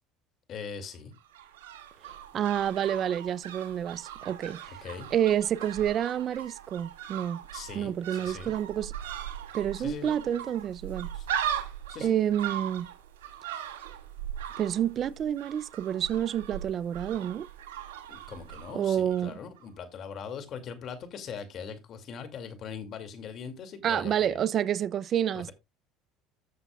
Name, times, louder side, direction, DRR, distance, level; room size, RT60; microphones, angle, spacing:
voice 1, 0.5-1.1 4.7-5.1 7.5-8.5 9.8-10.2 11.1-11.3 11.9-12.1 18.1-24.4, left 6 dB, 50° left, 2.4 m, -41 dB
sound 1, 1.1-19.3 19.6-19.7, right 10 dB, 90° right, 2.0 m, -39 dB
voice 2, 2.3-4.6 5.1-7.4 7.7-8.9 9.5-11.1 12.0-12.9 14.6-17.5 18.7-19.4 23.8-25.5, right 10 dB, 45° right, 0.5 m, -28 dB
14.0 x 7.0 x 2.3 m
supercardioid pair, 90°, 0 cm